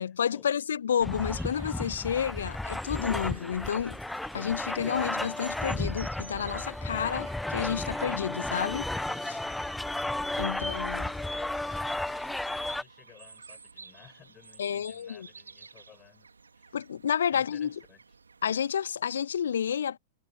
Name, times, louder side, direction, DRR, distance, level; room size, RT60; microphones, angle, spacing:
voice 1, 0.0-4.0 4.3-9.4 10.4-11.1 14.6-15.3 16.7-17.8 18.4-20.0, left 8 dB, 65° left, 1.1 m, -30 dB
sound 1, 1.0-12.8, left 1 dB, 5° left, 0.4 m, -33 dB
sound 2, 1.3-19.0, right 4 dB, 75° right, 2.9 m, -54 dB
voice 2, 11.1-16.3 16.5-16.8 17.3-18.0, left 10 dB, 25° left, 4.8 m, -55 dB
figure-of-eight pair, 100°, 0 cm